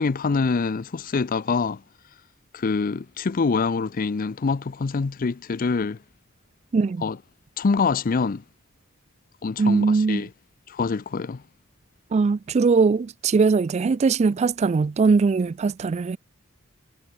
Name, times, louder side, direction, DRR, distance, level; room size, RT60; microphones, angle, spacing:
voice 1, 0.0-1.8 2.5-6.0 7.0-7.2 7.6-8.4 9.4-10.3 10.7-11.4, left 4 dB, 45° left, 0.5 m, -25 dB
voice 2, 6.7-7.1 9.6-10.3 12.1-16.2, right 4 dB, 30° right, 0.3 m, -21 dB
head